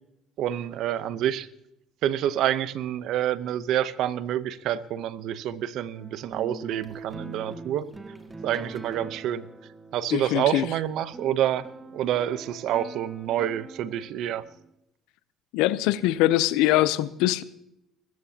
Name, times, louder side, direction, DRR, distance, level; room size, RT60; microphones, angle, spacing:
voice 1, 0.4-1.5 2.0-7.9 8.4-9.5 9.9-11.7 11.9-14.4, right 11 dB, 65° right, 15 dB, 0.8 m, -27 dB
sound 1, 5.9-14.7, right 3 dB, 20° right, 1.6 m, -44 dB
voice 2, 10.1-10.6 15.5-17.4, left 15 dB, 85° left, 16 dB, 0.6 m, -22 dB
21.5 x 14.0 x 2.9 m, 0.83 s
cardioid pair, 105°, 0 cm